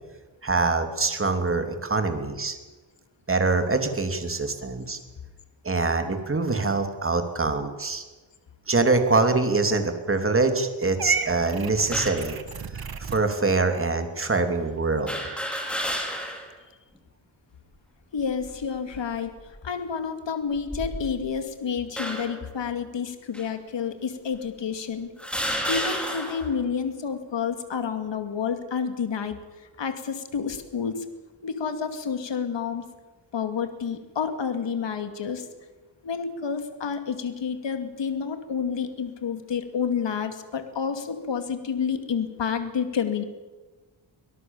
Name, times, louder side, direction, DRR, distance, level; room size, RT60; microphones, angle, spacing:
voice 1, 0.4-2.6 3.3-5.0 5.6-8.0 8.7-12.4 12.7-15.3, right 3 dB, 25° right, 6 dB, 3.0 m, -24 dB
Purr / Meow, 11.0-13.2, right 6 dB, 50° right, 1.9 m, -31 dB
sound 1, 11.9-12.3 13.1-13.2 15.1-16.5 16.9-17.0 18.2-18.6 19.3-19.6 20.5-21.3 22.0-22.5 23.3-23.5 24.3-24.4 25.2-26.5, equal, ahead, 4.8 m, -31 dB
voice 2, 18.1-19.3 19.6-25.1 25.4-29.4 29.8-31.1 31.4-32.8 33.3-35.4 36.0-43.2, left 6 dB, 65° left, 8 dB, 2.5 m, -29 dB
25.0 x 18.0 x 7.3 m, 1.2 s
wide cardioid pair, 110°, 47 cm